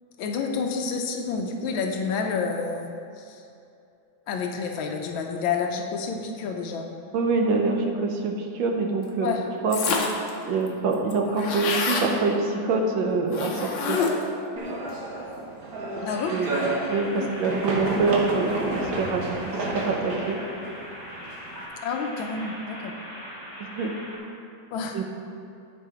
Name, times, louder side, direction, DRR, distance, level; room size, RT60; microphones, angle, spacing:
voice 1, 0.2-3.4 4.3-6.8 9.2-9.4 16.0-16.3 17.2-17.3 21.8-22.9 24.7-25.0, left 5 dB, 90° left, 3 dB, 1.5 m, -29 dB
voice 2, 7.1-9.3 9.6-9.8 10.4-14.1 16.3-16.6 16.9-20.4 23.6-23.9 24.9-25.0, right 3 dB, 75° right, 2 dB, 1.6 m, -25 dB
sound 1, 9.7-10.3 10.7-10.8 10.9-12.1 13.3-14.3, left 4 dB, 70° left, 1.6 m, -27 dB
sound 2, 14.6-21.6, right 2 dB, 55° right, 1.4 m, -31 dB
sound 3, 16.0-24.2, equal, 20° right, 1.9 m, -40 dB
11.0 x 4.8 x 4.9 m, 2.6 s
omnidirectional pair, 2.2 m